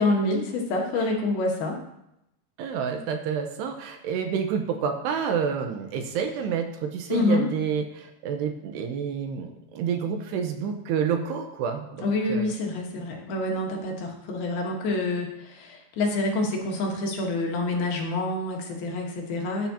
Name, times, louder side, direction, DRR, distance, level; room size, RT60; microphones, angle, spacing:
voice 1, 0.0-1.8 7.1-7.5 12.0-19.7, left 2 dB, 65° left, 0 dB, 3.0 m, -27 dB
voice 2, 2.6-11.9 12.3-12.5, right 7 dB, 75° right, 5 dB, 2.8 m, -29 dB
15.0 x 10.5 x 2.8 m, 0.83 s
omnidirectional pair, 5.2 m